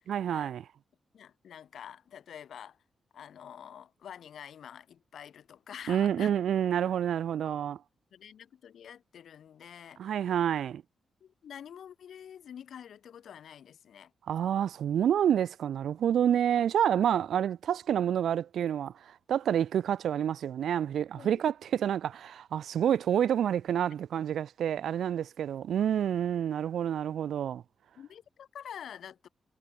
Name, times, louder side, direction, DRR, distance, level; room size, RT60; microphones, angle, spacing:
voice 1, 0.1-0.6 5.9-7.8 10.0-10.8 14.3-27.6, right 9 dB, 75° right, 0.3 m, -28 dB
voice 2, 1.1-2.8 3.1-6.3 7.4-7.7 8.1-10.3 11.2-14.1 16.2-16.4 21.2-21.4 28.0-29.3, left 9 dB, 65° left, 2.2 m, -47 dB
wide cardioid pair, 170°, 0 cm